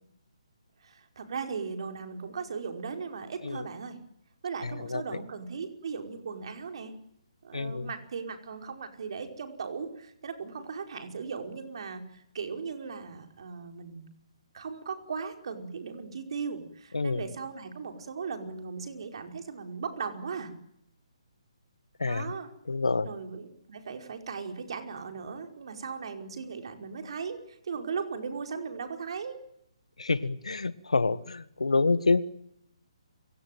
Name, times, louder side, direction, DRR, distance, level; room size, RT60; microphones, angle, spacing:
voice 1, 0.8-4.0 4.4-6.9 7.4-14.1 14.5-20.5 22.1-22.5 23.0-29.4, right 5 dB, 55° right, 5 dB, 5.1 m, -37 dB
voice 2, 4.6-5.0 7.5-7.9 16.9-17.2 22.0-22.3 22.7-23.1 30.0-32.2, left 3 dB, 80° left, 16 dB, 1.6 m, -27 dB
29.0 x 17.5 x 9.3 m, 0.76 s
figure-of-eight pair, 145°, 3 cm